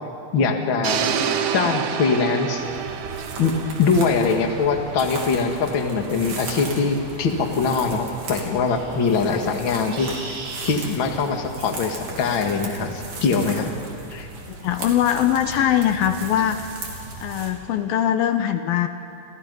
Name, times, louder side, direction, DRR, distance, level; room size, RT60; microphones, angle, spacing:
voice 1, 0.3-1.1 1.5-2.6 3.4-10.4 10.6-13.7 14.1-14.3, left 4 dB, 40° left, 3 dB, 2.2 m, -22 dB
sound 1, 0.8-4.9, right 7 dB, 65° right, 2.5 m, -28 dB
sound 2, 2.6-17.5, right 3 dB, 50° right, 4.2 m, -36 dB
voice 2, 14.5-16.7 17.2-18.9, left 10 dB, 75° left, 8 dB, 2.7 m, -21 dB
29.5 x 29.5 x 5.5 m, 2.8 s
omnidirectional pair, 4.3 m